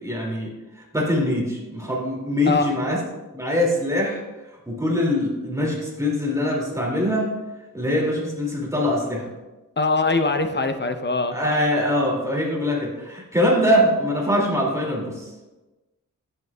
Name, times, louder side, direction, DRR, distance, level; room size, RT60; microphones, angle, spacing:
voice 1, 0.0-3.0 3.3-4.2 4.7-7.3 7.7-9.3 11.3-15.3, left 1 dB, 10° right, -3 dB, 2.4 m, -23 dB
voice 2, 9.8-11.4, left 3 dB, 30° left, 8 dB, 0.7 m, -22 dB
10.5 x 7.7 x 2.3 m, 1.1 s
wide cardioid pair, 85°, 34 cm